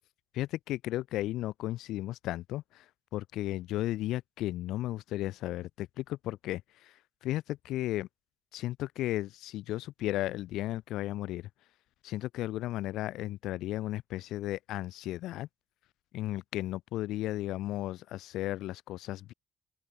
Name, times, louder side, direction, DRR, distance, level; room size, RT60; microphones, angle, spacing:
voice 1, 0.3-2.8 3.1-6.9 7.2-8.1 8.5-11.4 12.0-15.5 16.1-19.3, left 15 dB, 90° left, 6.0 m, -34 dB
open air
cardioid pair, 90°, 0 cm